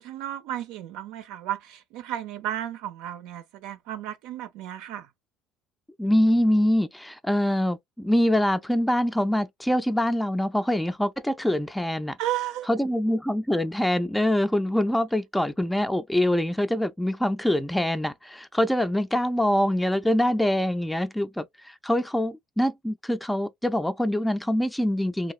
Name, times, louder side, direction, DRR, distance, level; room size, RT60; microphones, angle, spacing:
voice 1, 0.0-5.1 12.2-12.7, right 12 dB, 75° right, 0.5 m, -33 dB
voice 2, 6.0-12.2 12.7-25.3, left 1 dB, 5° left, 0.4 m, -24 dB
3.0 x 2.7 x 2.4 m
hypercardioid pair, 70°, 0 cm